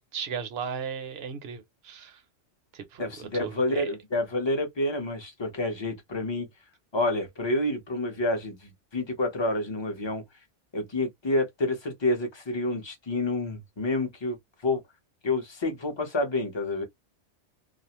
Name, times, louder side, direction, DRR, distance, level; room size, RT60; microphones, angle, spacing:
voice 1, 0.0-2.2 2.7-3.9, right 7 dB, 65° right, 0.8 m, -36 dB
voice 2, 3.0-6.5 6.9-10.2 10.7-14.4 14.6-14.8 15.2-16.8, left 2 dB, 25° left, 0.7 m, -28 dB
2.4 x 2.0 x 2.8 m
omnidirectional pair, 1.2 m